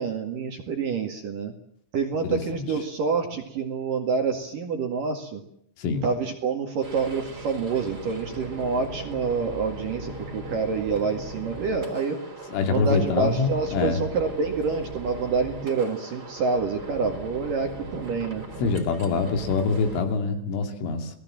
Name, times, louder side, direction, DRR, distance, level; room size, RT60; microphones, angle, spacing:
voice 1, 0.0-1.5 1.9-5.4 6.0-12.2 12.7-18.4, right 5 dB, 50° right, 5 dB, 3.0 m, -27 dB
sound 1, 6.8-20.0, right 2 dB, 20° right, 3.6 m, -39 dB
voice 2, 12.5-14.0 18.6-21.1, left 4 dB, 70° left, 5 dB, 5.1 m, -24 dB
29.5 x 19.0 x 7.6 m, 0.74 s
omnidirectional pair, 5.9 m